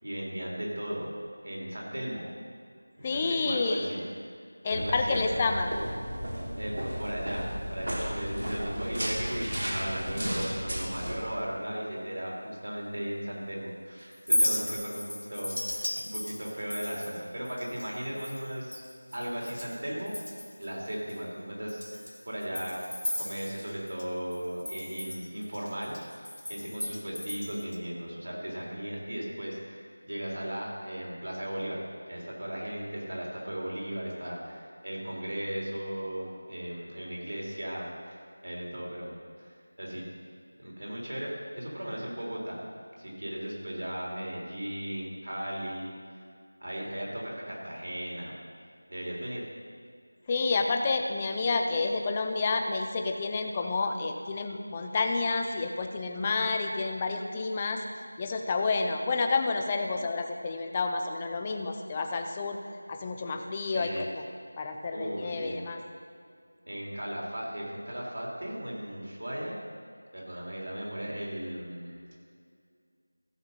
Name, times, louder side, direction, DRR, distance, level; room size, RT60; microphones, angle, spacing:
voice 1, 0.0-1.1 1.4-2.3 3.0-4.0 4.6-5.4 6.6-18.8 19.1-20.2 20.6-22.7 23.2-31.8 32.1-39.1 39.4-40.1 40.6-41.3 41.5-42.6 43.0-45.9 46.6-48.3 48.9-49.5 63.6-64.1 64.9-65.6 66.7-69.6 70.1-72.1, equal, 55° right, -3 dB, 3.7 m, -36 dB
voice 2, 3.0-3.9 4.6-5.7 50.3-57.8 58.2-62.6 62.9-64.2 64.6-65.8, left 3 dB, 10° left, 4 dB, 0.4 m, -29 dB
sound 1, 4.7-11.1, equal, 85° right, 3.5 m, -34 dB
Chink clink, 14.1-19.8 20.1-20.7 21.1-21.2 21.7-24.0 24.3-27.8, left 1 dB, 80° left, 1.4 m, -35 dB
15.0 x 7.3 x 5.6 m, 2.2 s
figure-of-eight pair, 180°, 0 cm